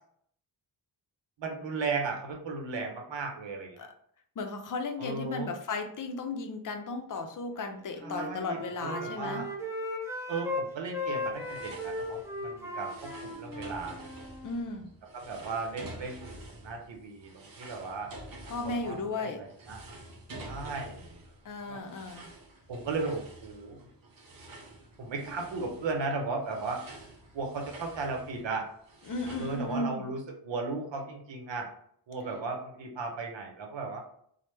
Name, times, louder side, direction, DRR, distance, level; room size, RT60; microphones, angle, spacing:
voice 1, 1.4-3.9 5.0-5.5 8.0-9.5 10.3-14.1 15.1-18.1 18.6-19.8 20.4-21.2 21.6-21.9 22.7-23.9 25.0-26.8 27.3-28.7 29.4-31.7 32.1-34.0, right 3 dB, 90° right, 3 dB, 0.7 m, -36 dB
voice 2, 4.4-9.4 14.4-14.9 18.5-19.4 21.4-22.3 29.1-30.1, left 3 dB, 50° left, 5 dB, 0.5 m, -35 dB
Wind instrument woodwind instrument, 8.0-10.6 10.9-14.5, left 1 dB, 5° right, 0.4 m, -37 dB
sound 1, 11.2-29.8, right 1 dB, 50° right, 0.8 m, -49 dB
3.2 x 2.1 x 3.1 m, 0.66 s
wide cardioid pair, 115°, 43 cm